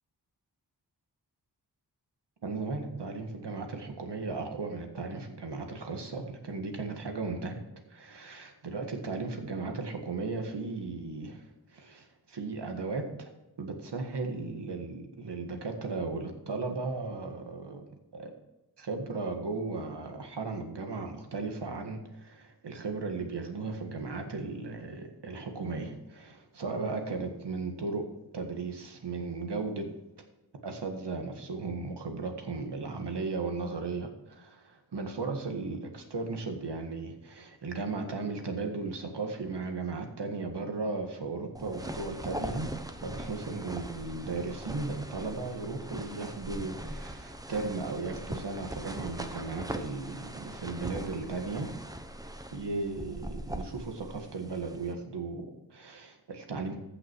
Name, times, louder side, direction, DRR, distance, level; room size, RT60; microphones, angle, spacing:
voice 1, 2.4-7.6 7.9-13.3 13.6-17.8 18.1-18.3 18.8-28.1 28.3-29.8 30.6-42.7 43.0-51.7 52.5-56.8, right 3 dB, 80° right, 4 dB, 1.8 m, -36 dB
sound 1, 41.5-54.9, right 1 dB, 10° right, 0.8 m, -41 dB
15.0 x 6.0 x 4.7 m, 0.99 s
wide cardioid pair, 100°, 41 cm